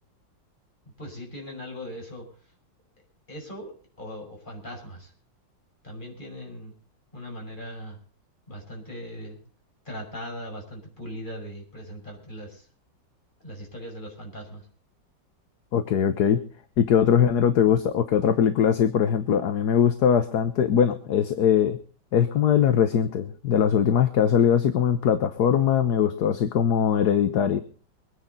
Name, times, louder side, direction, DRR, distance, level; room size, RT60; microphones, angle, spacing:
voice 1, 1.0-2.3 3.3-3.7 4.0-5.1 5.8-6.7 7.1-8.0 8.5-9.4 9.8-12.6 13.4-14.6, equal, 25° left, 0 dB, 6.1 m, -39 dB
voice 2, 15.7-16.4 16.8-21.8 22.1-27.6, left 8 dB, 60° left, 10 dB, 1.5 m, -21 dB
23.5 x 10.0 x 4.1 m, 0.39 s
omnidirectional pair, 2.0 m